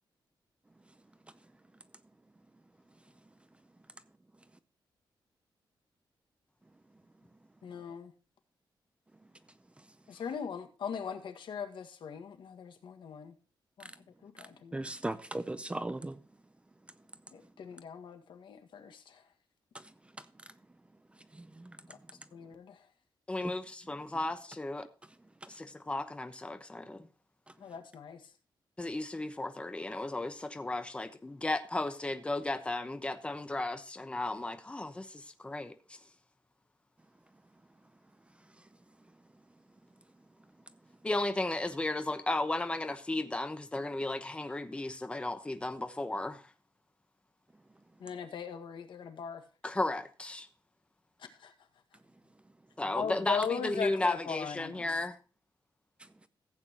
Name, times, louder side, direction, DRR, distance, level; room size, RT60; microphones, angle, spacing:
voice 1, 7.6-8.1 10.1-13.4 13.8-13.9 14.2-14.9 17.3-19.3 21.9-22.0 22.3-22.9 27.6-28.3 48.0-49.4 51.2-51.5 52.9-54.9, left 6 dB, 70° left, 1.7 m, -40 dB
voice 2, 14.4-16.2 19.7-20.5 21.1-22.0 23.4-23.5 25.4-25.6 27.5-27.6 56.0-56.3, right 2 dB, 15° right, 0.6 m, -40 dB
voice 3, 23.3-24.9 25.5-27.1 28.8-35.7 41.0-46.5 49.6-50.5 52.8-55.2, left 2 dB, 15° left, 1.0 m, -34 dB
15.0 x 8.8 x 2.9 m
wide cardioid pair, 150°, 8 cm